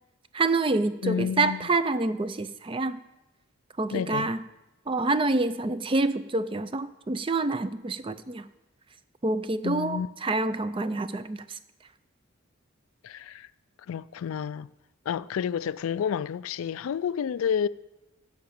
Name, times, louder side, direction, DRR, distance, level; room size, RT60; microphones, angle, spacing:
voice 1, 0.3-3.0 3.8-4.4 4.9-8.5 9.2-11.6, right 3 dB, 25° right, 0.4 m, -27 dB
voice 2, 1.0-1.7 3.9-4.3 9.6-10.1 13.0-13.5 13.9-14.7 15.1-17.7, left 7 dB, 75° left, 0.3 m, -30 dB
10.5 x 6.2 x 8.4 m
head